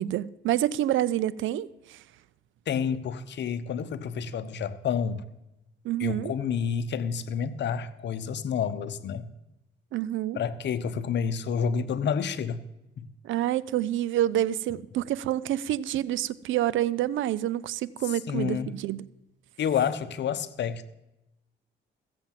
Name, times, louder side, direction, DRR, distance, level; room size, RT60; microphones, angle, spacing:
voice 1, 0.0-2.0 5.8-6.3 9.9-10.4 13.2-19.0, right 13 dB, 75° right, 0.5 m, -28 dB
voice 2, 2.7-5.2 6.0-9.3 10.3-12.6 13.0-13.1 18.3-18.8 19.6-20.9, left 7 dB, 60° left, 0.9 m, -29 dB
15.0 x 7.3 x 7.4 m
cardioid pair, 90°, 20 cm